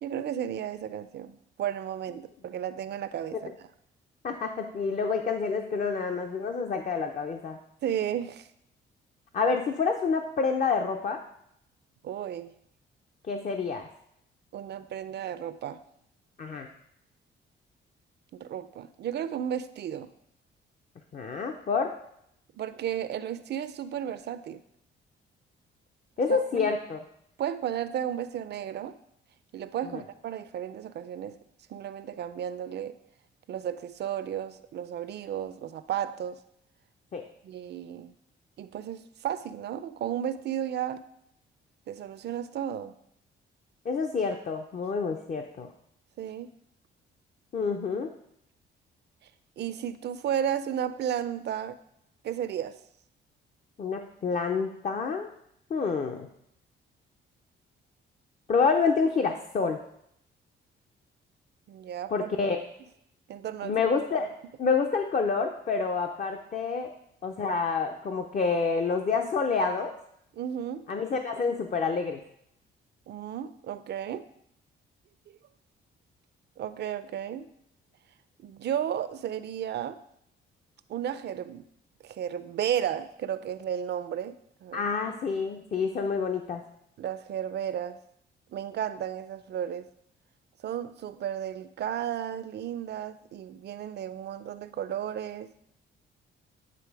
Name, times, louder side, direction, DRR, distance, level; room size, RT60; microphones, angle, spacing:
voice 1, 0.0-3.5 7.8-8.5 12.0-12.5 14.5-15.8 18.3-20.1 22.5-24.6 26.3-26.7 27.4-29.0 29.5-31.4 31.7-32.9 33.5-36.4 37.4-38.1 38.6-41.0 41.9-43.0 46.2-46.5 49.6-51.8 52.2-52.8 61.7-62.1 63.3-63.8 70.3-70.8 73.1-74.2 76.6-77.5 78.4-80.0 80.9-81.7 82.0-84.8 87.0-88.0 88.5-89.9 90.6-95.5, right 10 dB, 60° right, 13 dB, 0.5 m, -33 dB
voice 2, 4.2-7.6 9.3-11.2 13.3-13.9 16.4-16.7 21.1-21.9 26.2-27.0 29.9-30.0 37.1-37.2 43.8-45.7 47.5-48.1 53.8-55.3 55.7-56.3 58.5-59.8 62.1-62.6 63.6-64.3 64.6-66.9 67.2-69.9 70.9-72.2 84.7-86.6, left 5 dB, 40° left, 4 dB, 0.6 m, -28 dB
9.2 x 3.2 x 4.8 m, 0.74 s
cardioid pair, 90°, 20 cm